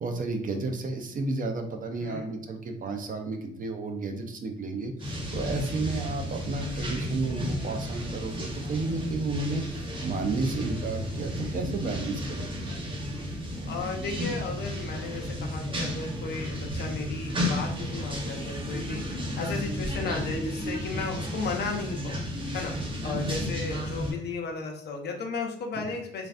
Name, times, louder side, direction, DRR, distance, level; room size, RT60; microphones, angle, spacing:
voice 1, 0.0-12.5 21.1-21.2 22.8-23.2 25.7-25.9, right 3 dB, 45° right, 5 dB, 0.5 m, -32 dB
voice 2, 2.0-2.3 13.7-22.7 23.0-26.3, left 4 dB, 55° left, 2 dB, 0.7 m, -34 dB
sound 1, 5.0-24.1, equal, 25° right, 0.9 m, -33 dB
3.2 x 2.5 x 2.4 m, 0.75 s
cardioid pair, 90°, 20 cm